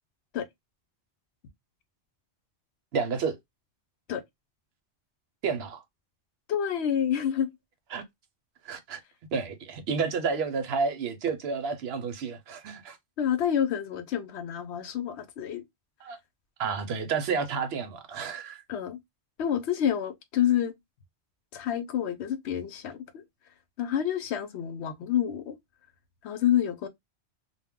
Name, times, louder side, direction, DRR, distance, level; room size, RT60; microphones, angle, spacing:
voice 1, 2.9-3.4 5.4-5.8 7.9-8.0 8.6-9.0 9.3-13.0 16.0-16.2 16.6-18.6, right 5 dB, 65° right, 0.8 m, -30 dB
voice 2, 6.5-7.5 13.2-15.6 18.7-19.0 19.4-20.7 21.5-23.2 23.8-25.6 26.2-26.9, left 9 dB, 75° left, 0.8 m, -28 dB
2.2 x 2.1 x 3.4 m
omnidirectional pair, 1.2 m